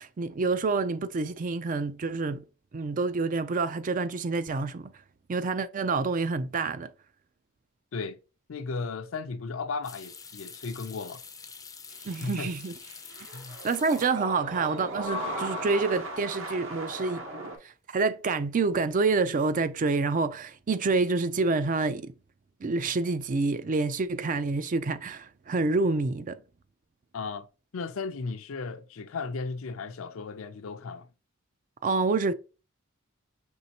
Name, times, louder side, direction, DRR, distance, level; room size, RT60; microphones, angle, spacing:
voice 1, 0.0-2.4 2.7-4.9 5.3-6.9 12.0-12.7 13.6-17.2 17.6-22.1 22.6-26.4 31.8-32.3, right 3 dB, 40° right, 0.4 m, -27 dB
voice 2, 8.5-11.2 12.2-12.5 13.3-13.6 27.1-27.5 27.7-31.1, left 4 dB, 70° left, 0.5 m, -35 dB
sound 1, 9.8-14.5 14.8-15.4 15.7-15.8 18.5-18.9 19.2-19.7, left 6 dB, 15° left, 0.5 m, -47 dB
sound 2, 11.9-17.6, right 1 dB, 65° right, 1.0 m, -37 dB
5.4 x 3.2 x 2.8 m
head